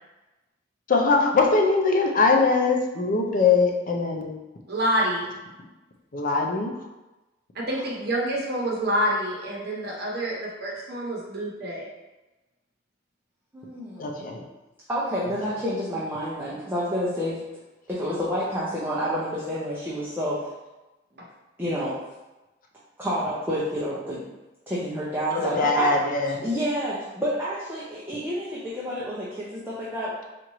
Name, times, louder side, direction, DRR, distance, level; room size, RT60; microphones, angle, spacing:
voice 1, 0.9-4.4 6.1-6.7 14.0-14.4 25.3-26.4, left 3 dB, 45° left, 1 dB, 0.5 m, -22 dB
voice 2, 4.7-5.2 7.5-11.9 21.2-21.3, right 1 dB, 60° right, -3 dB, 0.9 m, -27 dB
voice 3, 13.5-14.3 14.9-17.4 17.9-20.5 21.6-22.0 23.0-24.2 24.7-25.9 26.2-30.1, equal, 10° right, -8 dB, 0.6 m, -29 dB
4.3 x 2.5 x 3.0 m, 1.1 s
head